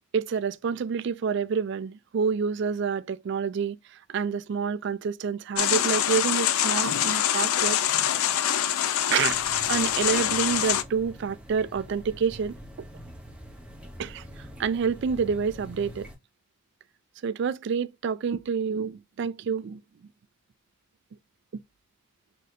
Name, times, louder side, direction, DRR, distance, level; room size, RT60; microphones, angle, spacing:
voice 1, 0.1-8.2 9.1-9.4 9.7-12.6 14.0-16.1 17.2-19.8, right 6 dB, 55° right, 0.3 m, -28 dB
sound 1, 5.6-10.8, left 10 dB, 85° left, 0.5 m, -25 dB
sound 2, 9.3-16.1, equal, 5° right, 0.8 m, -45 dB
4.1 x 3.7 x 2.5 m
head